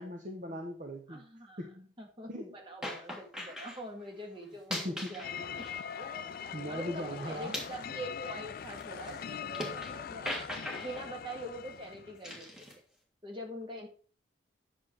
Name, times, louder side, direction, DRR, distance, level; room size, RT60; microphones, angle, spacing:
voice 1, 0.0-1.2 1.6-1.9 2.3-2.6 4.7-5.2 6.5-7.6, equal, 45° right, 3 dB, 1.0 m, -39 dB
voice 2, 1.1-1.7 2.0-5.6 5.9-6.0 6.3-10.4 10.7-12.5 13.2-13.9, right 1 dB, 25° right, 1 dB, 1.9 m, -44 dB
sound 1, 2.8-3.8 4.5-6.6 6.9-10.0 10.3-11.1 12.2-12.8, left 1 dB, 5° right, 1.6 m, -41 dB
sound 2, 5.2-12.3, left 7 dB, 50° left, 0.3 m, -42 dB
8.7 x 6.3 x 4.4 m, 0.40 s
head